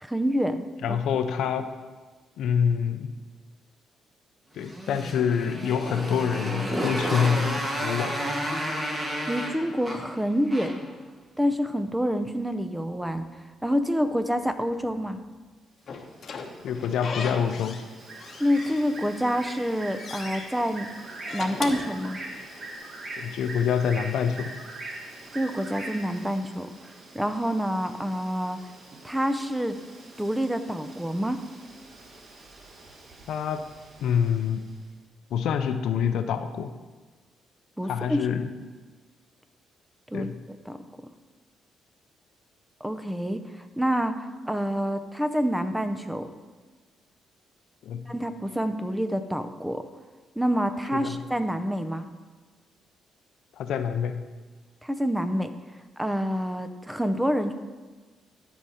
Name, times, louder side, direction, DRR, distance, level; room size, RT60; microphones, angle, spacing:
voice 1, 0.0-1.0 9.3-10.8 11.4-13.3 13.6-15.2 18.4-20.9 21.3-22.2 25.3-28.6 29.0-29.8 30.2-31.4 37.8-38.2 40.1-40.8 42.8-46.3 48.1-49.9 50.4-52.1 54.8-55.5 56.0-57.5, equal, 5° right, 9 dB, 0.6 m, -27 dB
voice 2, 0.8-1.7 2.4-3.1 4.5-8.2 16.6-17.8 23.2-24.5 33.3-33.6 34.0-34.6 35.3-36.7 37.9-38.5 40.1-40.4 47.8-48.1 50.9-51.2 53.6-54.2, left 7 dB, 75° left, 9 dB, 0.5 m, -26 dB
Motorcycle, 4.6-10.9, equal, 25° right, 1.6 m, -31 dB
Slam / Squeak, 15.9-17.9 18.2-19.2 19.6-20.4 21.1-22.7, left 4 dB, 50° left, 0.9 m, -37 dB
Bird, 16.0-34.7, right 2 dB, 50° right, 1.4 m, -43 dB
12.5 x 4.9 x 4.2 m, 1.4 s
cardioid pair, 90°, 0 cm